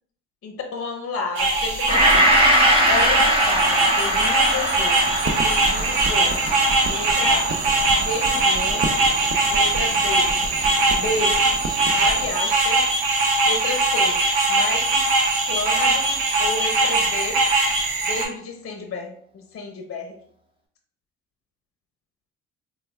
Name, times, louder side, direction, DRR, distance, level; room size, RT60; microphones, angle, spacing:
voice 1, 0.4-2.4 2.9-6.4 6.9-7.6 7.9-8.9 9.5-10.4 11.0-11.4 11.9-12.8 13.4-14.2 14.5-17.4 18.1-20.1, left 3 dB, 40° left, 4 dB, 0.6 m, -31 dB
sound 1, 1.4-18.3, right 2 dB, 85° right, 0.6 m, -21 dB
Gong, 1.9-10.2 10.6-10.7, equal, 15° right, 0.9 m, -23 dB
sound 2, 5.0-12.3, right 3 dB, 40° right, 0.5 m, -32 dB
4.0 x 2.2 x 2.3 m, 0.62 s
supercardioid pair, 55°, 33 cm